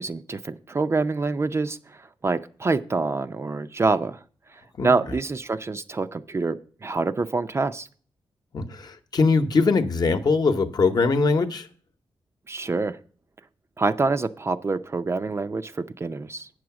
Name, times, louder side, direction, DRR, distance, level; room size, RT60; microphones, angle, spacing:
voice 1, 0.0-4.2 4.8-7.9 12.5-13.0 13.8-16.5, right 3 dB, 30° right, 0.5 m, -26 dB
voice 2, 8.5-11.7, left 4 dB, 50° left, 0.9 m, -21 dB
8.6 x 6.3 x 5.8 m
wide cardioid pair, 105°, 9 cm